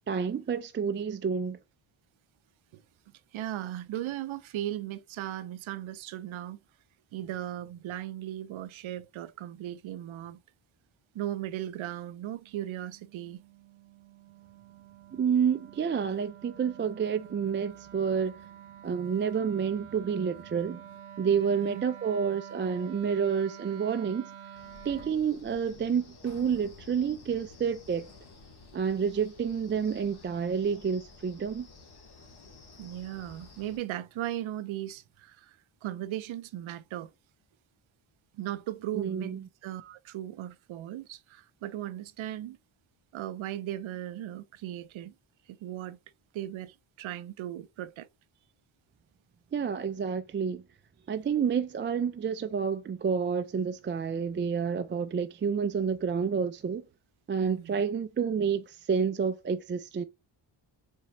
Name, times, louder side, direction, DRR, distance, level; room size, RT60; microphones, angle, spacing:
voice 1, 0.1-1.6 15.1-18.4 18.8-20.8 21.2-24.3 24.8-28.1 28.7-31.7 39.0-39.4 49.5-50.6 51.1-56.8 57.3-60.0, right 6 dB, 25° right, 0.3 m, -29 dB
voice 2, 3.3-6.6 7.1-10.4 11.1-13.4 21.6-21.8 32.8-37.1 38.3-39.3 39.6-42.6 43.1-45.1 45.5-46.0 46.3-48.1 57.4-57.8, right 13 dB, 70° right, 0.6 m, -37 dB
Wind instrument woodwind instrument, 12.3-25.2, right 10 dB, 90° right, 0.9 m, -49 dB
Wind, 24.6-33.8, left 3 dB, 50° left, 1.8 m, -52 dB
4.3 x 3.7 x 2.9 m
cardioid pair, 70°, 50 cm